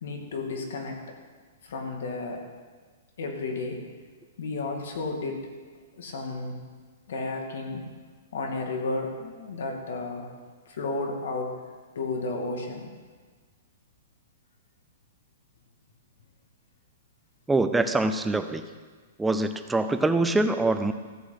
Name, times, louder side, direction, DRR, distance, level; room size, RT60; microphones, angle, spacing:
voice 1, 0.0-1.0 1.6-2.5 3.2-3.9 4.4-5.5 6.0-6.6 7.1-7.9 8.3-10.3 10.7-11.6 11.9-12.9, left 3 dB, 65° left, 2 dB, 2.4 m, -32 dB
voice 2, 17.5-18.6 19.2-20.9, right 2 dB, 5° right, 9 dB, 0.4 m, -24 dB
14.5 x 6.2 x 7.9 m, 1.5 s
hypercardioid pair, 175°, 0 cm